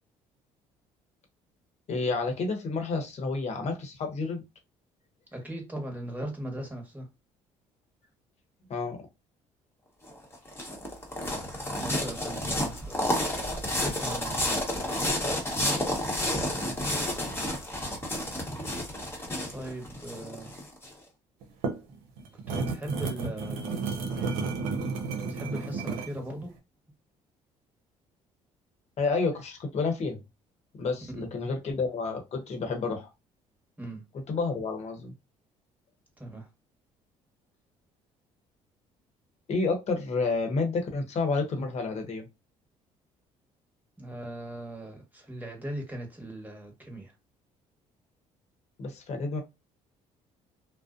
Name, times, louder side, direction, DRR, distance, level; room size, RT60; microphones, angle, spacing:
voice 1, 1.9-4.4 8.7-9.1 29.0-30.2 30.8-33.1 34.1-35.1 39.5-42.3 48.8-49.4, left 3 dB, 50° left, 1.0 m, -30 dB
voice 2, 5.3-7.0 11.8-13.2 13.8-14.4 19.5-20.5 22.5-24.4 25.2-26.5 31.1-31.2 33.8-34.0 36.2-36.5 44.0-47.1, right 1 dB, 10° right, 1.2 m, -39 dB
sound 1, 10.1-20.9, left 1 dB, 15° left, 1.0 m, -30 dB
sound 2, 21.4-26.2, right 4 dB, 85° right, 0.6 m, -32 dB
2.5 x 2.1 x 2.5 m
supercardioid pair, 75°, 14 cm